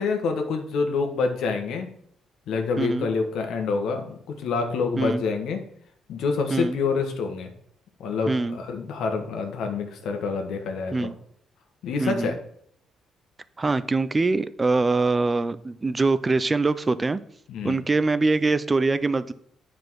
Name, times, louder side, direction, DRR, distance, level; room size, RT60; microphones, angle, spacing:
voice 1, 0.0-1.9 2.5-5.6 6.1-7.5 8.0-11.1 11.8-12.4 17.5-17.8, left 4 dB, 80° left, 5 dB, 1.4 m, -27 dB
voice 2, 2.8-3.1 5.0-5.2 6.5-6.8 8.3-8.6 10.9-11.1 12.0-12.3 13.6-17.2 17.6-19.3, right 3 dB, 25° right, 15 dB, 0.4 m, -23 dB
8.9 x 5.1 x 4.6 m, 0.67 s
cardioid pair, 90°, 0 cm